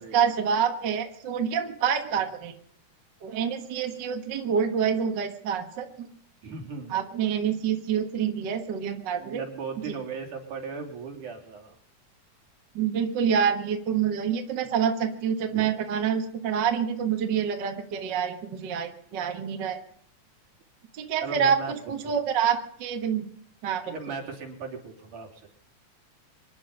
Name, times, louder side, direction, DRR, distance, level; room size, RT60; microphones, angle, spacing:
voice 1, 0.0-2.5 3.2-6.1 6.9-9.4 9.8-9.9 12.7-19.8 20.9-21.6 21.9-23.3 23.6-23.9, right 7 dB, 45° right, 5 dB, 1.7 m, -27 dB
voice 2, 6.4-6.9 9.2-11.8 15.5-15.7 21.2-21.7 22.0-22.1 23.8-25.5, right 5 dB, 75° right, 0 dB, 4.8 m, -37 dB
26.0 x 10.5 x 5.4 m, 0.66 s
omnidirectional pair, 3.6 m